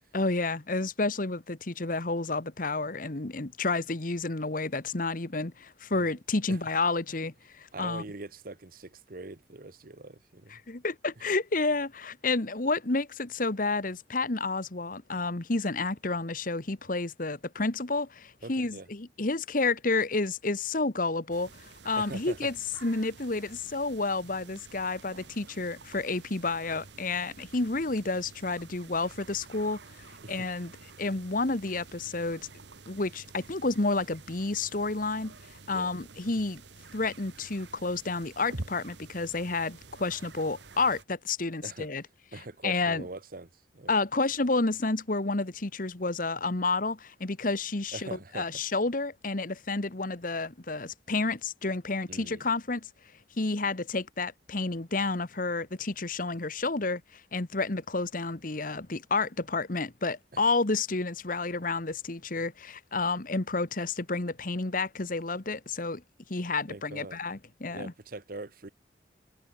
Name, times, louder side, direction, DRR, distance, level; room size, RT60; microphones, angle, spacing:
voice 1, 0.1-8.0 10.5-22.5 22.8-29.8 30.3-30.7 31.0-32.5 32.9-35.3 35.7-36.6 36.9-42.0 42.6-43.0 43.9-48.1 48.3-52.9 53.4-66.0 66.3-67.9, left 3 dB, 45° left, 1.4 m, -30 dB
voice 2, 7.7-10.6 11.2-11.3 18.4-18.9 21.9-22.5 30.2-30.5 35.7-35.9 41.6-41.9 42.3-43.9 47.9-48.6 52.1-52.4 60.3-60.4 66.7-67.2 67.7-68.7, right 2 dB, 50° right, 1.1 m, -42 dB
sound 1, 21.3-41.0, right 3 dB, 70° right, 1.7 m, -49 dB
head